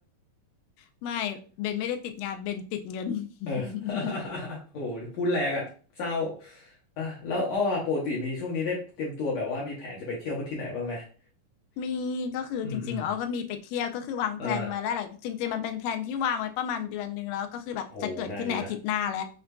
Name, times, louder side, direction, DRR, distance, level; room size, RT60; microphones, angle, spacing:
voice 1, 1.0-4.2 11.8-19.2, left 8 dB, 85° left, 6 dB, 2.2 m, -31 dB
voice 2, 3.5-5.7 6.0-6.7 7.0-11.1 12.6-13.1 14.4-14.7 17.9-18.7, left 2 dB, 70° left, -4 dB, 1.9 m, -31 dB
6.3 x 2.5 x 2.2 m, 0.38 s
omnidirectional pair, 3.8 m